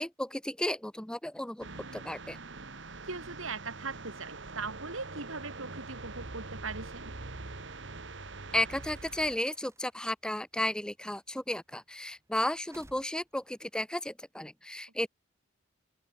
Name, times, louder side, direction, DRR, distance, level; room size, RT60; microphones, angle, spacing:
voice 1, 0.0-1.7 1.9-2.4 8.5-15.1, left 1 dB, 5° left, 0.5 m, -33 dB
sound 1, 1.6-9.4, right 3 dB, 60° right, 1.6 m, -44 dB
voice 2, 3.1-7.1, right 4 dB, 80° right, 4.0 m, -40 dB
sound 2, 6.8-13.8, right 1 dB, 15° right, 7.8 m, -63 dB
open air
head